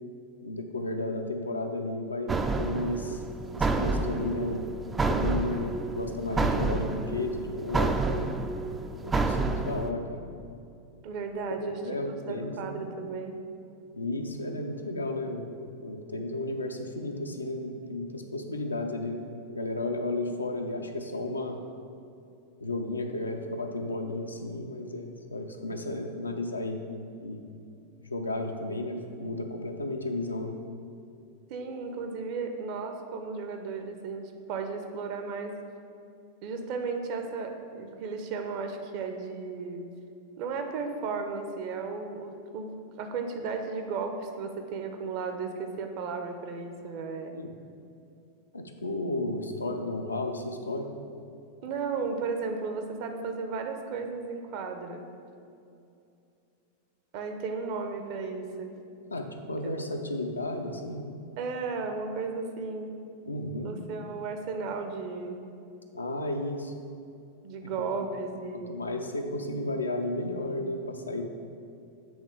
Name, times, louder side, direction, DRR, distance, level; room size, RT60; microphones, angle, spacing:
voice 1, 0.4-3.2 3.6-4.7 5.1-8.2 9.0-10.2 11.6-12.8 13.9-15.5 15.8-21.6 22.6-26.8 27.2-27.4 28.0-30.5 47.3-47.5 48.5-50.9 59.1-61.1 63.3-63.7 65.9-66.7 67.6-67.7 68.5-71.2, left 2 dB, 80° left, 4 dB, 0.5 m, -33 dB
sound 1, 2.3-9.9, right 3 dB, 15° right, 0.3 m, -29 dB
voice 2, 11.0-11.8 12.2-13.4 31.5-35.6 36.4-39.9 40.4-47.4 51.6-55.0 57.1-58.7 59.8-59.9 61.4-62.9 63.6-65.4 67.4-68.8, right 4 dB, 45° right, 5 dB, 0.7 m, -34 dB
7.9 x 3.6 x 4.9 m, 2.6 s
figure-of-eight pair, 90°, 0 cm